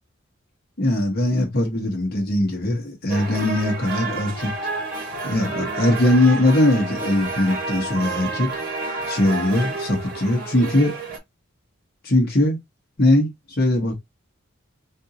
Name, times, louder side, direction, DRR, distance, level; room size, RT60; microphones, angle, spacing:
voice 1, 0.8-4.5 5.2-8.5 9.1-10.9 12.0-12.6 13.0-13.9, left 1 dB, 50° left, 1.1 m, -20 dB
sound 1, 3.1-11.2, right 3 dB, 40° right, 2.1 m, -30 dB
3.7 x 2.7 x 2.8 m
head